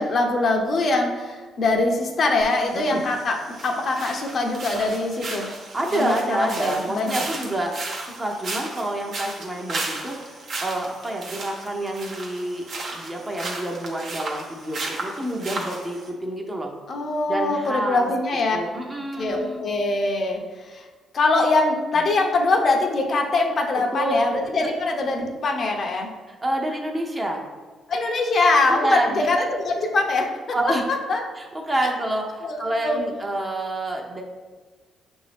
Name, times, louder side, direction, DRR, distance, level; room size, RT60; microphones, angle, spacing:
voice 1, 0.0-5.5 5.9-7.3 16.9-18.6 19.2-20.8 21.1-26.1 27.9-30.3 30.9-31.2 32.4-32.6 32.8-33.0, left 2 dB, 50° left, 2 dB, 0.6 m, -23 dB
sound 1, 2.4-16.1, right 2 dB, 55° right, 0.8 m, -35 dB
voice 2, 5.7-16.7 17.3-18.1 18.5-19.6 23.9-24.1 24.6-24.7 26.3-27.4 28.7-29.3 30.5-30.8 31.4-34.2, right 1 dB, 25° right, 1 dB, 0.7 m, -28 dB
5.8 x 2.6 x 3.4 m, 1.3 s
cardioid pair, 90°, 0 cm